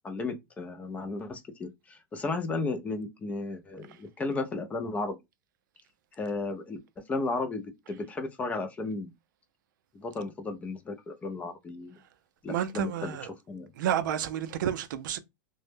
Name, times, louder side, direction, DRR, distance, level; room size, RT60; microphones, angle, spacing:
voice 1, 0.0-5.2 6.2-9.1 9.9-12.0 12.4-13.2 13.5-13.7, left 3 dB, 15° left, 0.3 m, -34 dB
voice 2, 12.5-13.3 13.8-15.2, right 10 dB, 75° right, 0.4 m, -30 dB
2.1 x 2.0 x 3.1 m
supercardioid pair, 145°, 10 cm